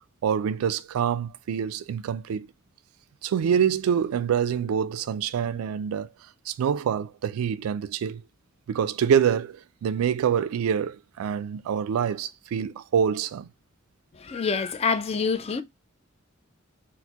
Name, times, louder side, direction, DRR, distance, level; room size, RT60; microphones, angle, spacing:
voice 1, 0.2-2.5 3.2-6.1 6.5-8.2 8.7-13.5, right 8 dB, 85° right, 0.3 m, -26 dB
voice 2, 14.2-15.6, left 5 dB, 30° left, 0.3 m, -26 dB
4.2 x 2.1 x 2.7 m
head